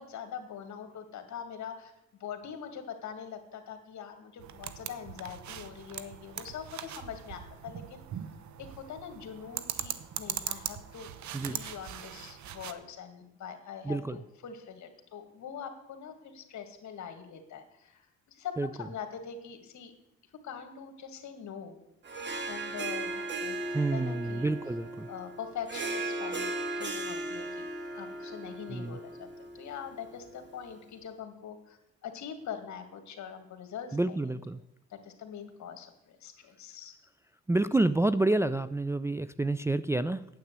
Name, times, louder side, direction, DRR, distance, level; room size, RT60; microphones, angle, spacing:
voice 1, 0.0-1.9 2.2-11.1 11.5-19.9 20.4-21.8 22.5-23.6 23.9-24.5 25.1-27.7 27.9-34.3 34.9-36.9, left 7 dB, 70° left, 7 dB, 2.1 m, -43 dB
sound 1, 4.4-12.7, right 10 dB, 70° right, 0.9 m, -40 dB
voice 2, 13.8-14.2 18.6-18.7 23.7-25.1 28.7-29.0 33.9-34.6 37.5-40.3, right 2 dB, 10° right, 12 dB, 0.4 m, -28 dB
Harp, 22.0-30.7, right 2 dB, 35° right, 2.1 m, -37 dB
9.4 x 8.5 x 8.1 m, 0.83 s
cardioid pair, 90°, 30 cm